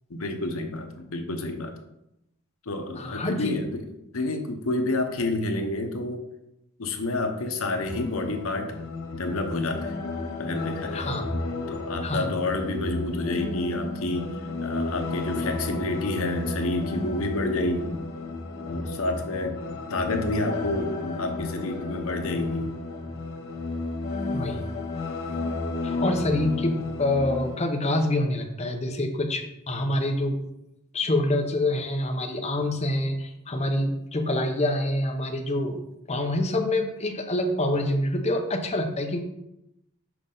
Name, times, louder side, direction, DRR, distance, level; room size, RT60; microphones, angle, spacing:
voice 1, 0.1-1.8 2.7-3.8 4.1-6.2 6.8-8.7 9.1-10.0 10.4-11.1 11.7-14.3 14.6-18.0 18.7-19.6 19.9-22.8, left 2 dB, 75° left, 5 dB, 0.9 m, -29 dB
voice 2, 3.0-3.5 10.9-11.3 12.0-12.3 24.3-24.6 25.3-25.4 25.8-30.4 30.9-35.8 36.1-39.2, left 1 dB, 30° left, 4 dB, 0.7 m, -26 dB
sound 1, 7.8-27.6, left 3 dB, 55° left, 1.4 m, -33 dB
6.2 x 5.1 x 3.8 m, 0.85 s
head